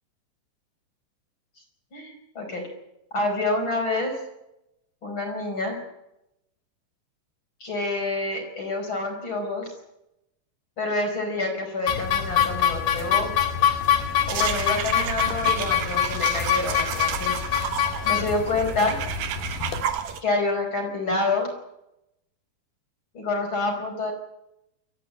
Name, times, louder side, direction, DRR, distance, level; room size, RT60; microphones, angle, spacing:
voice 1, 1.9-2.7 3.1-4.2 5.0-5.8 7.6-9.7 10.8-13.3 14.3-17.4 18.0-19.0 20.2-21.5 23.1-24.1, left 2 dB, 25° left, 4 dB, 5.6 m, -27 dB
sound 1, 11.9-19.8, left 9 dB, 60° left, 3.4 m, -25 dB
sound 2, 14.3-20.2, right 8 dB, 60° right, 2.4 m, -31 dB
29.0 x 14.0 x 8.7 m, 0.87 s
omnidirectional pair, 5.1 m